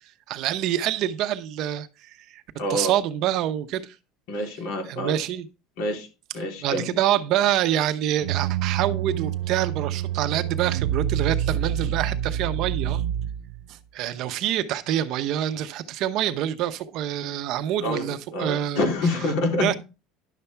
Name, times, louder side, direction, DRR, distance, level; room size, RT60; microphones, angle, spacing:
voice 1, 0.3-2.4 2.7-3.9 4.9-5.5 6.6-13.0 13.7-18.9 19.6-19.7, right 11 dB, 45° right, 0.8 m, -26 dB
voice 2, 2.6-2.9 4.3-5.2 5.8-6.1 6.3-7.0 17.8-19.8, left 1 dB, 65° left, 3.5 m, -27 dB
sound 1, 8.2-13.7, right 10 dB, 85° right, 0.4 m, -27 dB
11.0 x 7.0 x 3.4 m
cardioid pair, 180°, 0 cm